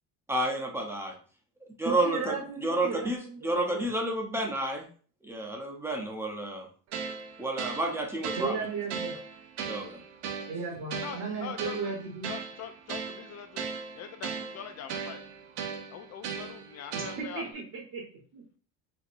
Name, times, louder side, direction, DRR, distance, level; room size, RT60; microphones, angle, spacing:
voice 1, 0.3-1.1 1.8-2.3 2.6-4.9 5.2-6.6 7.4-8.7 9.7-10.0, right 1 dB, 5° right, 1 dB, 0.6 m, -30 dB
voice 2, 1.8-3.9 8.4-9.1 10.5-12.3 16.9-18.0 18.3-18.4, right 4 dB, 40° right, -1 dB, 1.0 m, -35 dB
sound 1, 6.9-17.5, right 6 dB, 85° right, 0.7 m, -38 dB
voice 3, 11.0-11.8 12.3-13.7 14.0-15.2 15.9-17.4, left 8 dB, 45° left, 7 dB, 0.4 m, -42 dB
4.3 x 2.6 x 2.5 m, 0.42 s
cardioid pair, 135°, 39 cm